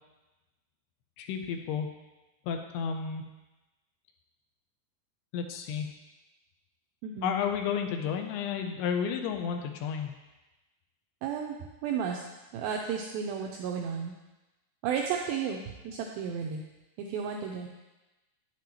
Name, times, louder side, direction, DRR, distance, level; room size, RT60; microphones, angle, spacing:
voice 1, 1.2-1.9 2.5-3.2 5.3-5.9 7.2-10.1, left 7 dB, 85° left, 5 dB, 2.6 m, -32 dB
voice 2, 7.0-7.4 11.2-11.6 11.8-12.2 12.5-14.1 14.8-15.6 15.8-16.6 17.0-17.7, right 7 dB, 90° right, 1 dB, 2.1 m, -33 dB
9.2 x 7.6 x 3.0 m, 1.1 s
omnidirectional pair, 4.8 m